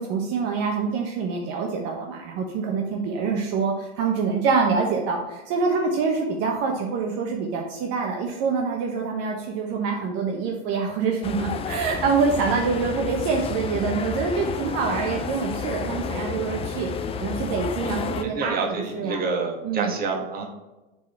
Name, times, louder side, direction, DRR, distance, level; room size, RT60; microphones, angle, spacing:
voice 1, 0.0-16.9 17.2-19.2 19.6-19.9, right 5 dB, 55° right, 0 dB, 1.1 m, -25 dB
sound 1, 11.2-18.3, left 6 dB, 20° left, 0.4 m, -31 dB
voice 2, 18.2-20.5, right 4 dB, 30° right, 0 dB, 1.6 m, -28 dB
7.1 x 4.1 x 4.4 m, 1.1 s
supercardioid pair, 115°, 30 cm